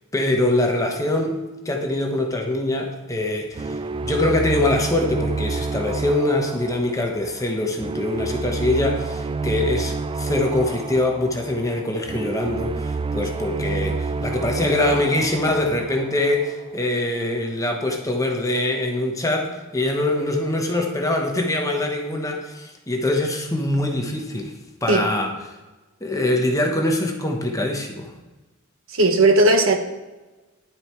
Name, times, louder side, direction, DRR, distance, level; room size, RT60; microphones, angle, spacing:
voice 1, 0.1-24.5 24.8-25.3 26.0-28.1, left 1 dB, 15° left, 2 dB, 1.1 m, -23 dB
sound 1, 3.5-16.6, right 4 dB, 25° right, 0.3 m, -29 dB
voice 2, 28.9-29.8, right 2 dB, 70° right, 6 dB, 1.2 m, -16 dB
11.0 x 7.8 x 4.5 m, 1.1 s
head